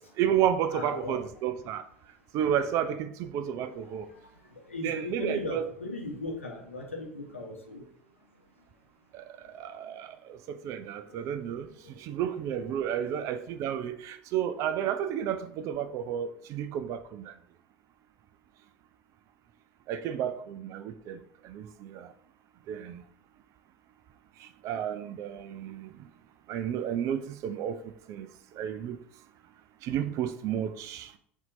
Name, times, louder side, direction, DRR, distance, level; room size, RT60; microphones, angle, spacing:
voice 1, 0.2-1.8 2.3-4.1 4.8-5.7 9.1-17.3 19.9-22.1 22.7-23.0 24.4-25.9 26.5-28.3 28.5-29.0 29.8-31.1, right 9 dB, 50° right, 0.4 m, -32 dB
voice 2, 0.7-1.2 3.7-7.8 9.4-9.5 9.8-10.0 11.0-11.3 11.8-12.1 12.9-13.4, left 2 dB, 90° left, 0.9 m, -39 dB
5.7 x 2.7 x 2.6 m
figure-of-eight pair, 70°, 7 cm